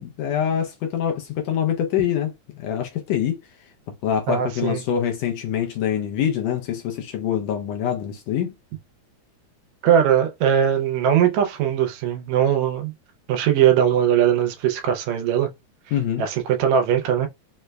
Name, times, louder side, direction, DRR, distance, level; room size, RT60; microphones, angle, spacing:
voice 1, 0.0-3.4 4.0-8.5 15.9-16.2, left 9 dB, 80° left, 1.5 m, -25 dB
voice 2, 4.3-4.8 9.8-12.9 13.3-15.5 16.2-17.3, right 9 dB, 80° right, 1.8 m, -20 dB
4.9 x 2.1 x 2.2 m
omnidirectional pair, 3.5 m